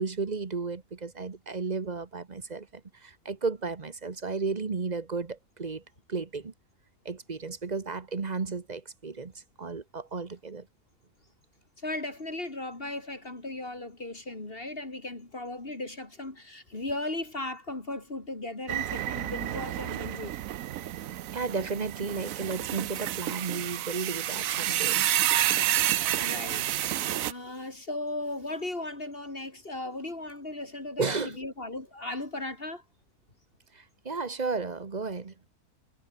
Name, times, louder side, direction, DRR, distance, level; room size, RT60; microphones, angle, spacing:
voice 1, 0.0-5.8 6.1-6.5 7.0-10.7 21.3-25.0 31.0-31.4 33.7-35.3, right 4 dB, 30° right, 1.1 m, -33 dB
voice 2, 11.8-20.4 26.2-32.8, left 2 dB, 35° left, 3.3 m, -37 dB
sound 1, 18.7-27.3, right 13 dB, 65° right, 1.0 m, -29 dB
omnidirectional pair, 1.6 m